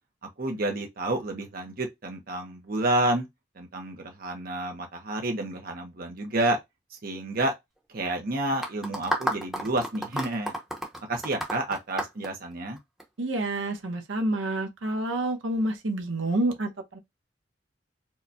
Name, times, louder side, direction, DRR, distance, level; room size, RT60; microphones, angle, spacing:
voice 1, 0.4-3.3 3.6-6.6 6.9-7.5 7.9-10.5 11.1-12.8, right 2 dB, 50° right, 0.7 m, -29 dB
sound 1, 8.6-13.0, right 1 dB, ahead, 0.8 m, -31 dB
voice 2, 13.2-17.0, right 1 dB, 85° right, 0.9 m, -28 dB
4.6 x 2.2 x 2.7 m
head